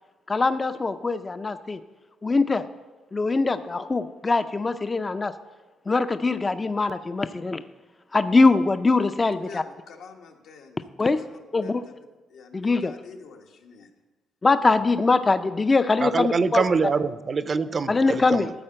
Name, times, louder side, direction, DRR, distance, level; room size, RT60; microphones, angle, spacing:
voice 1, 0.3-1.8 2.2-2.7 3.1-5.3 5.9-7.6 8.1-9.6 11.0-11.2 11.5-11.8 12.5-12.9 14.4-16.6 17.9-18.5, left 3 dB, 25° left, 10 dB, 0.4 m, -22 dB
voice 2, 9.3-11.9 12.3-13.9, left 5 dB, 80° left, 3 dB, 1.2 m, -47 dB
voice 3, 16.0-18.5, right 4 dB, 40° right, 13 dB, 0.5 m, -24 dB
13.0 x 4.4 x 7.5 m, 1.2 s
cardioid pair, 90°, 0 cm